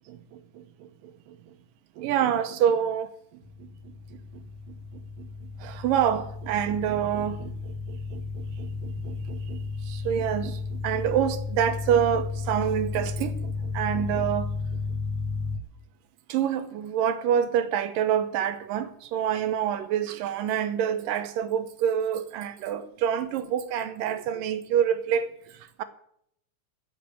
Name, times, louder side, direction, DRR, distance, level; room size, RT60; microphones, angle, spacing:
voice 1, 0.1-1.5 2.0-3.1 3.6-14.8 16.3-25.8, right 9 dB, 80° right, 2.6 m, -28 dB
sound 1, 3.4-15.6, left 4 dB, 60° left, 2.1 m, -33 dB
12.0 x 6.7 x 9.5 m
omnidirectional pair, 3.9 m